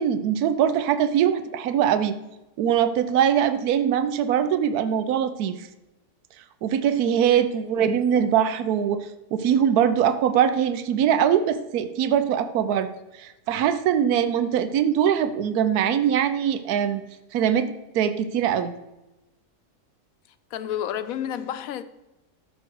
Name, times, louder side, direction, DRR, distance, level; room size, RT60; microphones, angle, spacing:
voice 1, 0.0-2.1 2.6-5.7 6.6-9.0 9.3-12.9 13.2-17.0 17.3-18.7, right 9 dB, 80° right, 1.2 m, -22 dB
voice 2, 20.5-21.8, left 10 dB, 70° left, 1.0 m, -30 dB
12.5 x 6.5 x 4.6 m
omnidirectional pair, 1.6 m